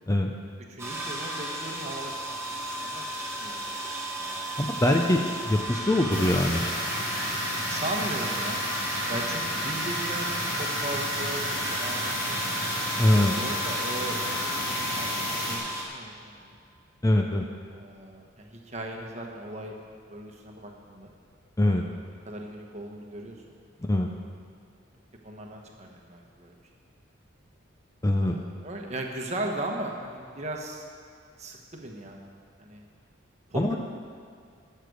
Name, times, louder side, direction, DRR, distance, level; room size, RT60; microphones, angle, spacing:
voice 1, 0.7-2.1 2.5-3.6 4.2-4.6 7.7-8.6 9.1-12.4 13.2-16.6 17.7-19.8 20.1-21.1 22.2-23.4 25.2-26.5 28.2-30.8 31.4-32.2 32.6-32.8 33.5-33.8, right 1 dB, 35° right, 1 dB, 1.2 m, -37 dB
sound 1, 0.8-15.8, right 1 dB, 15° right, 1.4 m, -34 dB
voice 2, 4.6-5.2 5.5-6.6 13.0-13.3 17.0-17.4 21.6-21.8 23.9-24.1 28.0-28.4 33.5-33.8, left 1 dB, 15° left, 2 dB, 0.5 m, -23 dB
sound 2, 6.1-15.6, left 1 dB, 45° left, 2.6 m, -32 dB
12.5 x 6.8 x 6.4 m, 2.2 s
head